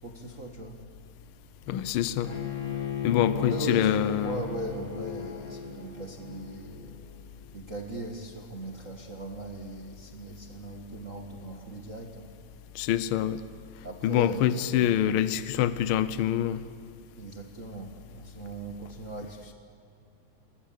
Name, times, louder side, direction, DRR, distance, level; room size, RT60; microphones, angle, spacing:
voice 1, 0.0-0.8 3.2-6.9 7.5-12.3 13.8-15.2 17.2-19.5, right 1 dB, 35° right, 1 dB, 1.5 m, -39 dB
voice 2, 1.7-2.3 3.0-4.4 12.7-13.4 14.0-16.6, left 11 dB, 85° left, 13 dB, 1.1 m, -25 dB
Bowed string instrument, 2.2-7.3, left 7 dB, 30° left, 2.3 m, -36 dB
29.0 x 20.0 x 8.7 m, 2.2 s
omnidirectional pair, 3.4 m